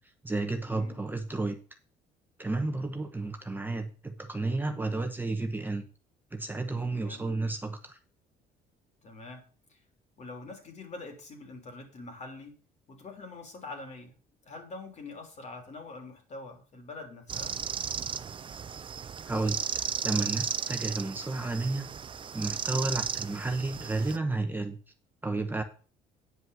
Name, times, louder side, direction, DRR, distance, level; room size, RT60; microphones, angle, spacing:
voice 1, 0.0-1.6 2.4-5.9 6.3-8.0 19.3-19.6 20.0-21.9 22.3-24.8 25.2-25.6, right 2 dB, 10° right, 6 dB, 0.9 m, -32 dB
voice 2, 2.4-2.7 6.9-7.2 9.0-9.8 10.2-12.6 12.9-14.2 14.4-17.6, left 3 dB, 45° left, 4 dB, 3.4 m, -45 dB
sound 1, 17.3-24.2, right 7 dB, 30° right, 0.5 m, -35 dB
9.5 x 5.5 x 7.0 m, 0.39 s
cardioid pair, 110°, 17 cm